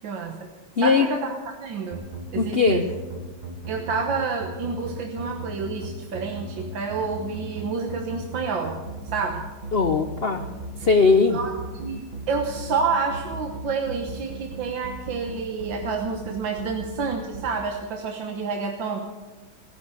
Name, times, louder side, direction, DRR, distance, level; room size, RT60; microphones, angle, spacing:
voice 1, 0.0-0.5 0.8-2.0 2.3-2.8 3.7-8.9 9.1-9.5 11.3-19.1, right 5 dB, 70° right, 3 dB, 1.8 m, -29 dB
voice 2, 0.8-1.1 2.4-2.8 9.7-10.4 10.8-11.4, left 4 dB, 70° left, 8 dB, 0.5 m, -19 dB
sound 1, 1.9-17.5, right 3 dB, 25° right, 1.5 m, -36 dB
17.5 x 11.5 x 7.0 m, 1.3 s
omnidirectional pair, 2.1 m